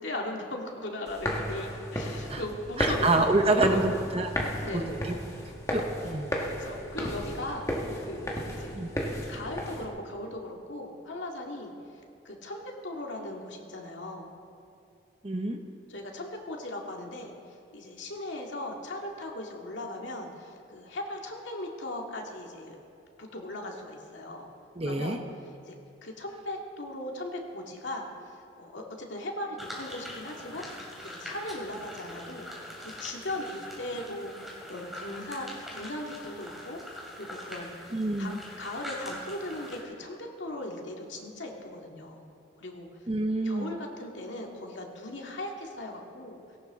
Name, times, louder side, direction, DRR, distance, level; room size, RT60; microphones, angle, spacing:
voice 1, 0.0-3.1 3.4-3.8 4.6-4.9 6.5-7.7 8.0-9.0 9.3-11.7 12.2-14.3 15.9-17.3 17.7-22.8 23.2-24.5 24.8-25.2 25.6-30.6 31.0-32.5 32.8-37.7 38.2-42.3 42.6-42.9 43.4-46.6, left 1 dB, 75° left, 0 dB, 2.0 m, -38 dB
sound 1, 1.1-9.8, equal, 15° left, 1.4 m, -34 dB
voice 2, 2.8-5.1 5.7-6.3 8.7-8.9 15.2-15.6 24.8-25.2 37.9-38.4 43.1-43.7, right 2 dB, 30° right, 5 dB, 0.8 m, -27 dB
sound 2, 29.6-39.8, left 1 dB, ahead, 2.8 m, -43 dB
18.0 x 17.5 x 3.7 m, 2.6 s
head